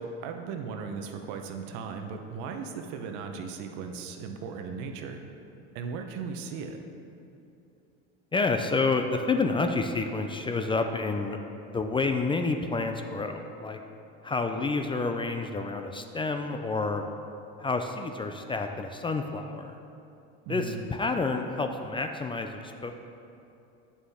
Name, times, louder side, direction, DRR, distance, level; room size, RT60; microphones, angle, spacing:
voice 1, 0.0-5.2 5.7-6.8 20.5-20.8, right 5 dB, 70° right, 5 dB, 0.9 m, -37 dB
voice 2, 8.3-11.4 11.7-13.8 14.2-17.1 17.6-19.8 20.5-22.9, left 3 dB, 15° left, 6 dB, 0.4 m, -29 dB
8.8 x 7.2 x 3.6 m, 2.7 s
supercardioid pair, 100°, 31 cm